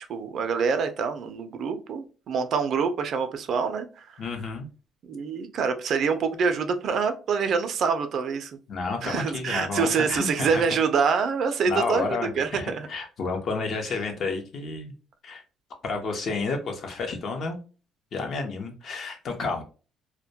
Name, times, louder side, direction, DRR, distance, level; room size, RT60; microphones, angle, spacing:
voice 1, 0.1-4.2 5.1-8.6 9.0-12.9, right 5 dB, 55° right, 8 dB, 0.4 m, -26 dB
voice 2, 4.2-4.7 8.7-10.6 11.6-14.9 15.2-15.4 15.8-17.6 18.1-19.6, left 4 dB, 55° left, 4 dB, 0.6 m, -30 dB
2.1 x 2.1 x 2.7 m, 0.35 s
cardioid pair, 115°, 0 cm